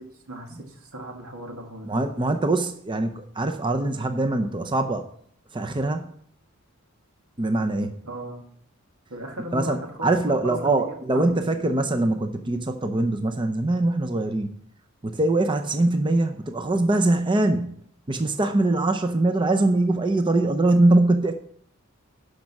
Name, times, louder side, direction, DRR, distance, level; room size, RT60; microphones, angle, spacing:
voice 1, 0.3-1.9 8.0-8.4 9.1-11.6, right 1 dB, 90° right, 2 dB, 2.2 m, -36 dB
voice 2, 1.9-5.1 5.5-6.1 7.4-7.9 9.5-14.5 15.0-17.7 18.1-21.3, right 2 dB, 25° right, 6 dB, 0.6 m, -23 dB
12.0 x 5.3 x 6.0 m, 0.63 s
head